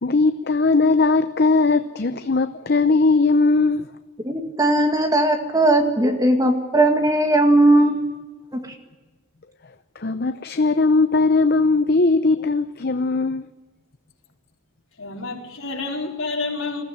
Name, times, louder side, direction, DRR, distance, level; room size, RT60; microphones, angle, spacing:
voice 1, 0.0-3.9 10.0-13.5, left 3 dB, 45° left, 10 dB, 0.7 m, -19 dB
voice 2, 4.2-8.0 8.5-8.7, right 1 dB, 15° right, 5 dB, 2.0 m, -18 dB
voice 3, 15.0-16.8, left 3 dB, 70° left, 0 dB, 4.1 m, -29 dB
21.5 x 15.0 x 9.9 m, 1.2 s
head